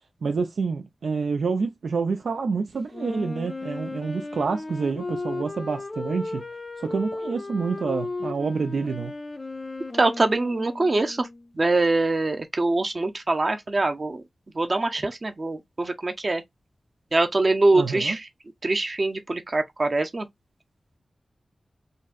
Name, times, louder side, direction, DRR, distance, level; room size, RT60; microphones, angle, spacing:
voice 1, 0.2-6.4 6.8-9.1 17.7-18.2, right 4 dB, 90° right, 0.4 m, -28 dB
Wind instrument woodwind instrument, 2.9-11.5, left 2 dB, 30° left, 0.4 m, -35 dB
voice 2, 9.9-11.3 11.5-14.2 14.5-16.4 17.1-18.3 18.6-20.3, right 2 dB, 40° right, 0.6 m, -23 dB
3.8 x 2.2 x 2.4 m
wide cardioid pair, 115°, 0 cm